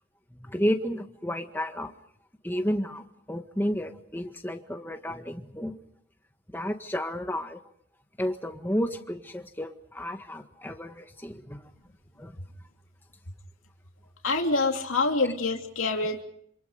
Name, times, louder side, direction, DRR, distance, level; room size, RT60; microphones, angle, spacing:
voice 1, 0.4-1.9 2.4-5.7 6.5-7.6 8.2-11.6 12.2-12.4, equal, 10° left, 5 dB, 1.7 m, -31 dB
voice 2, 14.2-16.2, left 3 dB, 90° left, 2 dB, 2.9 m, -26 dB
27.5 x 27.0 x 5.2 m, 0.68 s
head